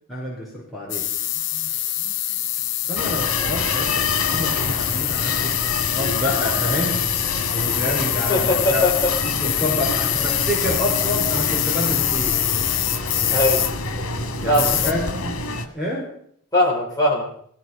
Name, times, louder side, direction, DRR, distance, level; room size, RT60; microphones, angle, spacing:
voice 1, 0.1-1.1 2.9-7.0 7.5-12.4 14.4-15.3 15.7-16.1, left 1 dB, ahead, -4 dB, 4.1 m, -28 dB
sound 1, 0.9-14.9, left 13 dB, 55° left, 0.9 m, -25 dB
sound 2, 3.0-15.7, left 3 dB, 90° left, 2.0 m, -27 dB
voice 2, 8.3-8.9 13.3-13.6 14.5-14.9 16.5-17.2, left 1 dB, 15° left, -3 dB, 4.7 m, -20 dB
17.5 x 14.0 x 5.5 m, 0.66 s
head